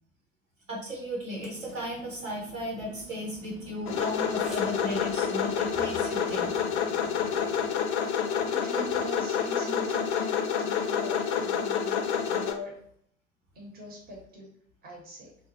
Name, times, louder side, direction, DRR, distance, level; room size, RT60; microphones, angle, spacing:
voice 1, 0.7-6.5, equal, 75° right, -3 dB, 1.3 m, -35 dB
sound 1, 1.3-7.7, right 3 dB, ahead, 0.4 m, -48 dB
sound 2, 3.9-12.5, left 7 dB, 60° left, 0.5 m, -28 dB
voice 2, 8.5-12.8 13.5-14.5 14.8-15.3, equal, 25° right, -2 dB, 0.9 m, -42 dB
2.8 x 2.0 x 3.1 m, 0.65 s
figure-of-eight pair, 75°, 39 cm